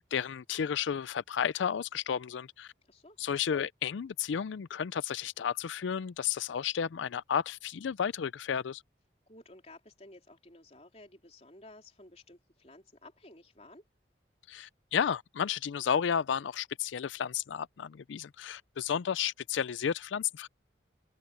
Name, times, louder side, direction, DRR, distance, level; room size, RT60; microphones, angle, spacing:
voice 1, 0.1-2.7 3.2-8.8 14.5-20.5, left 8 dB, 80° left, 0.4 m, -32 dB
voice 2, 9.3-13.8, left 2 dB, 35° left, 3.8 m, -54 dB
open air
head